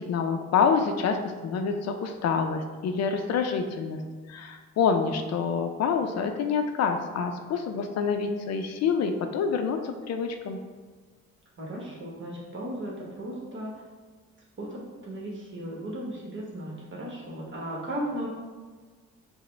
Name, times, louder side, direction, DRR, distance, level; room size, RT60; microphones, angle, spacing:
voice 1, 0.0-4.0 4.3-10.6, left 6 dB, 60° left, 6 dB, 0.4 m, -27 dB
voice 2, 11.6-13.7 14.6-18.3, right 1 dB, 40° right, -4 dB, 1.0 m, -36 dB
4.9 x 2.1 x 3.2 m, 1.4 s
cardioid pair, 90°, 30 cm